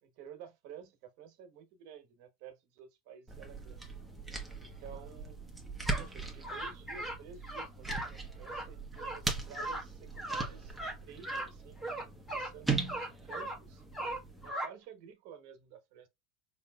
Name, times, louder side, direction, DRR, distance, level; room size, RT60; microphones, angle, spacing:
voice 1, 0.0-3.9 4.6-5.4 6.0-10.8 11.0-11.8 12.3-13.8 14.4-16.1, right 7 dB, 60° right, 1.1 m, -52 dB
sound 1, 3.3-14.5, right 3 dB, 5° right, 1.0 m, -40 dB
sound 2, 5.9-6.1 6.4-7.2 7.4-8.1 8.4-8.7 9.0-9.2 9.5-9.8 10.2-10.5 10.8-11.0 11.2-11.5 11.8-12.5 12.9-13.6 13.9-14.7, right 1 dB, 15° left, 1.4 m, -38 dB
4.9 x 2.8 x 2.3 m
supercardioid pair, 130°, 0 cm